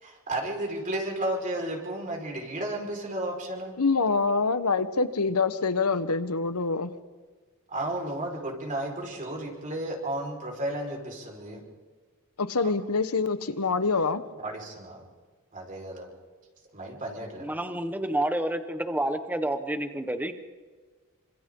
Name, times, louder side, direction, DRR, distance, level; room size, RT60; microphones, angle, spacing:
voice 1, 0.0-3.8 7.7-11.6 12.6-12.7 14.4-15.0 15.5-16.1 16.7-17.7, right 1 dB, 35° right, 0 dB, 5.0 m, -33 dB
voice 2, 3.8-6.9 12.4-14.2, left 4 dB, 85° left, 12 dB, 1.2 m, -25 dB
voice 3, 17.4-20.3, right 1 dB, 10° right, 8 dB, 1.3 m, -29 dB
28.0 x 26.0 x 3.9 m, 1.4 s
head